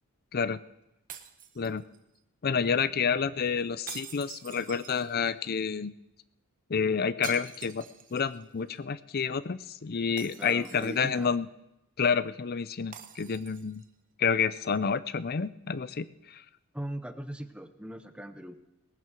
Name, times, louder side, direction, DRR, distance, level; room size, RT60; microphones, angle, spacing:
sound 1, 1.1-2.2 3.9-5.4 7.2-8.4 8.8-8.9 10.2-11.3 12.9-13.9, right 8 dB, 40° right, 0.9 m, -46 dB
voice 1, 2.4-5.9 6.7-11.5 12.0-13.8 14.2-16.4, left 6 dB, 45° left, 16 dB, 0.5 m, -29 dB
voice 2, 10.4-11.3 16.7-18.6, right 1 dB, 5° right, 9 dB, 0.8 m, -39 dB
18.5 x 9.3 x 6.1 m, 0.89 s
head